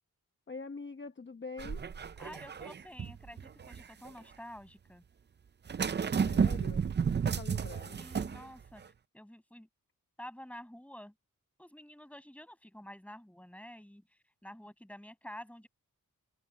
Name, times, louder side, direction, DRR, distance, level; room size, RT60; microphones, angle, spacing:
voice 1, 0.5-1.8 6.2-8.0, left 4 dB, 35° left, 1.0 m, -45 dB
sound 1, 1.6-4.1 5.7-8.4 8.8-8.9, right 6 dB, 35° right, 0.4 m, -32 dB
voice 2, 2.2-5.0 8.0-9.7 10.2-11.1 11.6-15.7, equal, 5° left, 6.0 m, -49 dB
open air
wide cardioid pair, 170°, 33 cm